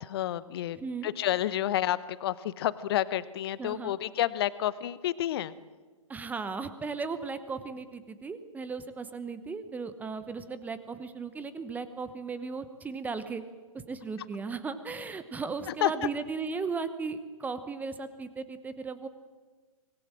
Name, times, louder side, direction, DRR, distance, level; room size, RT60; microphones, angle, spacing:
voice 1, 0.0-0.8 1.0-5.5 15.7-15.9, left 13 dB, 45° left, 16 dB, 1.0 m, -30 dB
voice 2, 0.8-1.1 3.6-3.9 6.1-13.4 13.7-19.1, right 4 dB, 10° right, 12 dB, 1.0 m, -36 dB
24.5 x 19.5 x 7.6 m, 1.5 s
figure-of-eight pair, 130°, 18 cm